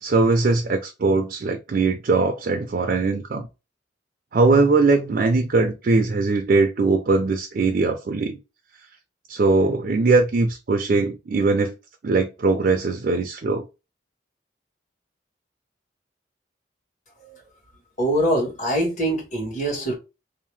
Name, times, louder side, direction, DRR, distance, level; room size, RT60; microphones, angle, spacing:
voice 1, 0.0-3.5 4.3-8.4 9.3-11.7 12.0-13.6, right 3 dB, 50° right, 0.4 m, -20 dB
voice 2, 18.0-19.9, right 1 dB, 40° left, 1.4 m, -24 dB
2.7 x 2.0 x 3.2 m
head